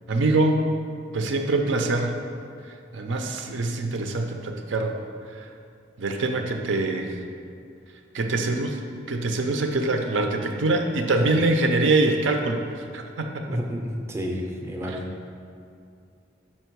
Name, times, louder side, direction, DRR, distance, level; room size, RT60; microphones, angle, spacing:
voice 1, 0.1-0.6 1.1-2.2 2.9-4.9 5.3-5.5 6.0-7.2 8.1-8.8 9.1-13.6 14.9-15.0, right 2 dB, 90° right, 4 dB, 0.6 m, -24 dB
voice 2, 13.5-15.0, equal, 15° right, 0 dB, 0.5 m, -30 dB
5.8 x 4.4 x 4.6 m, 2.4 s
head